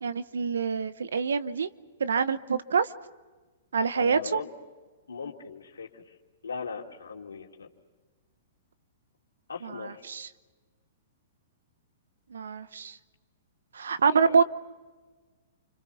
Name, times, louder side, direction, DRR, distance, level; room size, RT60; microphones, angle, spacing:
voice 1, 0.0-1.7 2.0-2.9 3.7-4.4 9.6-10.3 12.3-13.0 13.7-14.4, right 5 dB, 80° right, 14 dB, 1.0 m, -26 dB
voice 2, 3.9-4.5 5.1-6.2 6.4-7.7 9.5-10.0 14.2-14.4, left 5 dB, 85° left, 1 dB, 2.8 m, -39 dB
29.5 x 26.0 x 5.7 m, 1.3 s
hypercardioid pair, 120°, 0 cm